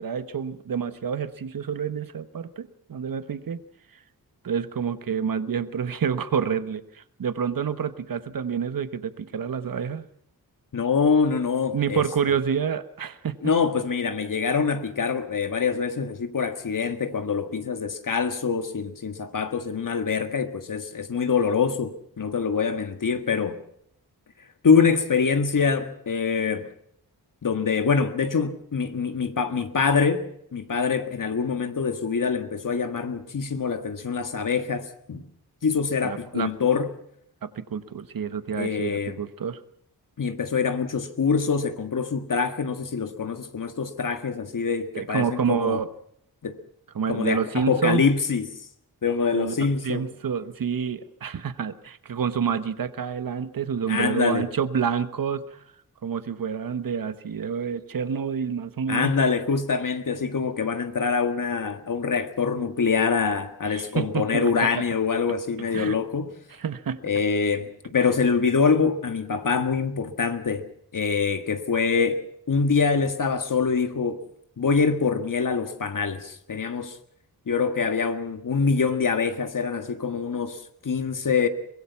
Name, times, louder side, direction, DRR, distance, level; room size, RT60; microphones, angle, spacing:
voice 1, 0.0-3.6 4.4-10.0 11.7-13.5 36.0-36.5 37.4-39.6 44.9-45.9 46.9-48.0 49.3-49.5 49.8-55.6 56.0-59.1 63.7-64.8 65.7-66.0 66.6-67.0, right 7 dB, 60° right, 1.2 m, -28 dB
voice 2, 10.7-12.0 13.4-23.6 24.6-26.7 27.4-30.3 30.5-35.2 35.6-36.9 38.5-39.2 40.2-45.8 46.4-46.6 47.1-48.5 49.0-50.1 53.9-54.4 58.9-66.3 67.0-70.7 70.9-74.2 74.6-77.0 77.5-81.5, left 5 dB, 55° left, 1.7 m, -25 dB
23.5 x 21.5 x 5.8 m
wide cardioid pair, 160°, 38 cm